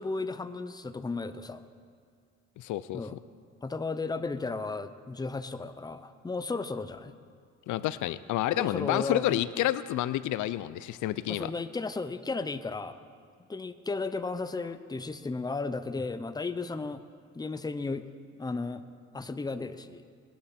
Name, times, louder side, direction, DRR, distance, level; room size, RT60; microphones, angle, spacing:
voice 1, 0.0-1.6 2.9-3.2 3.6-7.1 8.6-9.4 11.3-13.0 13.5-17.0 17.3-18.0 18.4-18.8 19.1-20.0, left 3 dB, 15° left, 11 dB, 0.6 m, -34 dB
voice 2, 2.6-3.0 7.7-11.5, left 14 dB, 80° left, 16 dB, 0.5 m, -29 dB
20.0 x 10.0 x 4.3 m, 2.2 s
cardioid pair, 90°, 30 cm